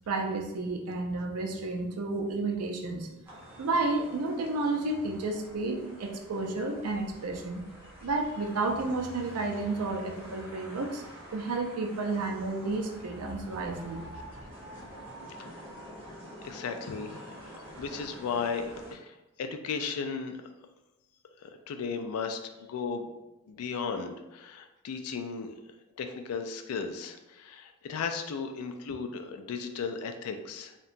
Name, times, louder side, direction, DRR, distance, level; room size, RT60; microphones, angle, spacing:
voice 1, 0.1-3.1 3.6-7.6 8.0-11.0 11.3-14.0, right 3 dB, 85° right, 3 dB, 0.4 m, -31 dB
sound 1, 3.2-18.9, equal, 10° right, 0.5 m, -47 dB
voice 2, 16.4-20.3 21.4-23.1 23.5-25.5 26.0-30.8, left 5 dB, 80° left, 6 dB, 0.3 m, -35 dB
2.8 x 2.2 x 2.5 m, 0.99 s
head